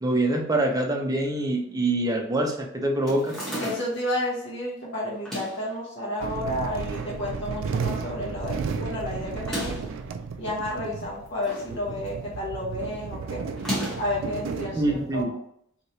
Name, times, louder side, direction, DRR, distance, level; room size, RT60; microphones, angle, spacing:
voice 1, 0.0-3.4 14.8-15.3, right 1 dB, 15° right, 1 dB, 0.5 m, -25 dB
sound 1, 3.1-4.1 5.1-5.7 6.5-7.1 7.5-7.6 7.7-7.8 9.3-10.0 11.0-11.7 12.1-12.4 13.5-14.2, equal, ahead, 1.0 m, -34 dB
voice 2, 3.6-9.8 10.4-13.4 14.0-15.4, left 1 dB, 60° left, -5 dB, 1.1 m, -31 dB
sound 2, 6.2-15.2, right 5 dB, 70° right, 0.3 m, -33 dB
3.2 x 2.8 x 2.7 m, 0.70 s
head